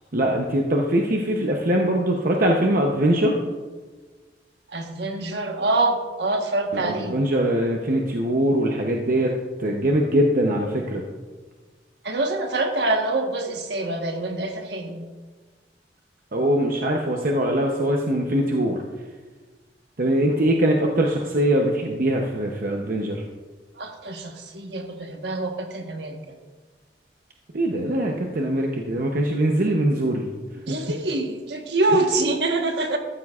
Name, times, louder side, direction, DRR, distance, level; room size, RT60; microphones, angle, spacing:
voice 1, 0.1-3.4 6.7-9.3 9.6-11.0 16.3-18.8 20.0-23.2 27.5-30.3 30.7-30.8, right 1 dB, 50° right, 1 dB, 0.8 m, -22 dB
voice 2, 4.7-7.2 12.0-15.1 23.7-26.2 30.7-33.0, right 2 dB, 70° right, 3 dB, 1.3 m, -25 dB
14.0 x 12.0 x 2.4 m, 1.4 s
head